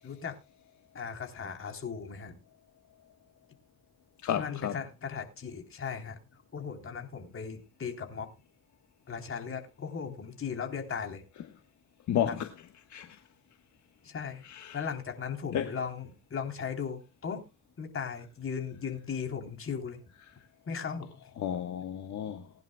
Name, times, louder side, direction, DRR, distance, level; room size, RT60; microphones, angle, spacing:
voice 1, 0.0-0.4 0.9-2.4 4.4-6.2 6.5-8.3 9.1-11.2 12.2-12.4 14.0-17.4 17.8-20.0 20.7-21.1, left 6 dB, 45° left, 3.5 m, -37 dB
voice 2, 4.2-4.8 12.1-12.5 12.9-13.2 14.4-14.8 15.5-15.7 21.4-22.5, left 10 dB, 70° left, 1.4 m, -32 dB
21.0 x 10.5 x 2.3 m
cardioid pair, 90°, 30 cm